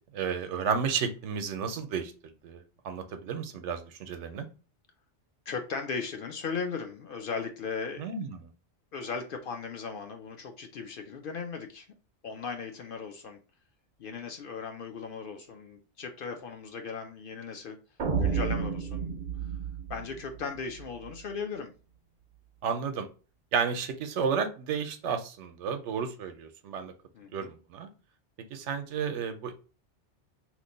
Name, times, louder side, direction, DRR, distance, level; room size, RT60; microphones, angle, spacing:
voice 1, 0.1-2.1 2.4-4.5 8.0-8.5 22.6-23.1 23.5-26.9 27.3-27.9 28.5-29.5, right 6 dB, 85° right, 7 dB, 0.9 m, -32 dB
voice 2, 5.5-8.1 8.9-11.9 12.2-13.4 14.0-17.8 18.2-19.3 19.9-21.7 27.1-27.5, left 5 dB, 60° left, 5 dB, 0.6 m, -37 dB
sound 1, 18.0-21.1, right 6 dB, 50° right, 0.5 m, -31 dB
3.0 x 2.1 x 3.8 m, 0.35 s
omnidirectional pair, 1.2 m